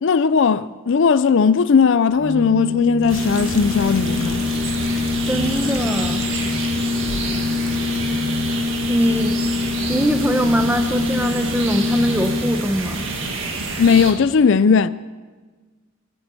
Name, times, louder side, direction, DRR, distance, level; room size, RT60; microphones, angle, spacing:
voice 1, 0.0-4.4 13.8-14.9, left 5 dB, 60° left, 0.4 m, -17 dB
Organ, 2.1-12.8, left 4 dB, 45° right, 1.0 m, -24 dB
sound 1, 3.0-8.0, left 3 dB, 75° left, 1.1 m, -36 dB
sound 2, 3.1-14.1, right 3 dB, 60° right, 2.0 m, -28 dB
voice 2, 5.3-6.3 8.9-9.3 9.9-13.1, equal, 10° right, 1.0 m, -22 dB
19.5 x 8.8 x 8.4 m
head